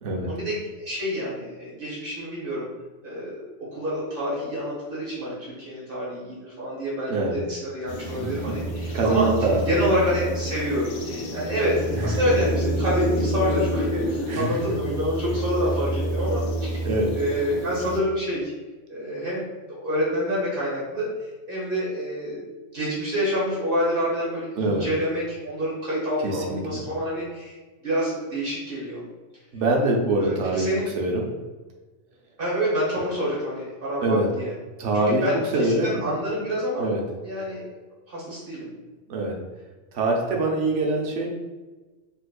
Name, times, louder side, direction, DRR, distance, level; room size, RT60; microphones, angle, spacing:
voice 1, 0.2-2.7 3.0-9.3 9.7-18.5 18.9-21.1 21.5-22.4 22.7-27.6 27.8-29.0 30.2-30.9 32.4-34.5 34.9-37.7 38.1-38.7, equal, 50° right, -6 dB, 1.1 m, -27 dB
voice 2, 7.1-7.4 8.2-9.6 12.0-12.1 14.3-14.5 16.8-17.1 24.6-24.9 26.2-26.8 29.5-30.7 31.0-31.2 34.0-34.3 34.8-35.2 35.5-36.1 36.8-37.0 39.1-39.3 39.9-41.3, right 2 dB, 75° right, 0 dB, 1.0 m, -24 dB
sound 1, 7.9-18.0, right 1 dB, 60° left, 0.5 m, -28 dB
4.1 x 2.5 x 2.3 m, 1.2 s
omnidirectional pair, 1.3 m